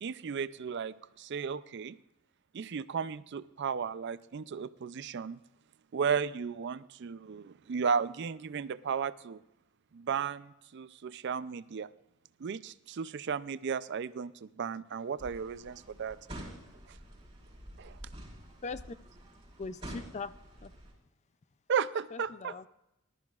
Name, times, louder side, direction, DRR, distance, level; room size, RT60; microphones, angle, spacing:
voice 1, 0.0-2.0 2.5-5.4 5.9-9.4 9.9-11.9 12.4-16.2 16.9-17.0 17.8-18.0 21.7-22.7, right 6 dB, 55° right, 16 dB, 0.4 m, -34 dB
sound 1, 15.2-20.9, right 1 dB, 25° right, 4.3 m, -48 dB
voice 2, 18.6-19.0 19.6-20.3 20.6-20.7 22.1-22.7, left 4 dB, 30° left, 14 dB, 0.4 m, -40 dB
19.5 x 12.5 x 2.4 m, 0.88 s
head